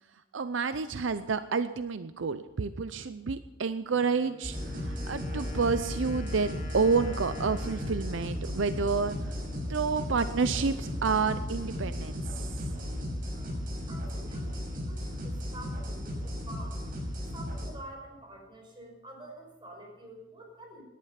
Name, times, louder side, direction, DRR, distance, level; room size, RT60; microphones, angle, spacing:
voice 1, 0.3-9.3 9.7-12.5, right 5 dB, 70° right, 12 dB, 0.6 m, -29 dB
Wind instrument woodwind instrument, 3.9-9.6, left 3 dB, 40° left, 1.8 m, -49 dB
sound 1, 4.4-17.7, equal, 45° right, 5.9 m, -35 dB
voice 2, 13.9-16.8 17.3-20.8, right 1 dB, 25° right, 1 dB, 5.3 m, -48 dB
18.0 x 11.5 x 5.8 m, 1.1 s
head